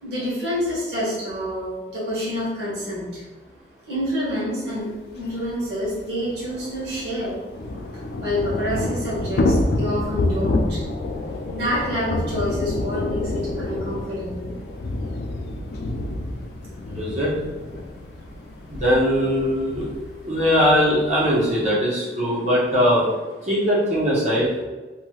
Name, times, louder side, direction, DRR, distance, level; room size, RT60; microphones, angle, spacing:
voice 1, 0.0-3.2 3.9-7.3 7.9-10.8 11.5-14.6, equal, 70° right, -9 dB, 1.2 m, -27 dB
Thunder / Rain, 5.1-5.2 5.4-5.5 5.8-21.7, left 2 dB, 65° left, 0.3 m, -28 dB
voice 2, 17.0-17.3 18.8-19.9 20.2-23.1 23.5-24.5, equal, 40° right, -7 dB, 0.6 m, -20 dB
3.0 x 2.8 x 2.3 m, 1.2 s
head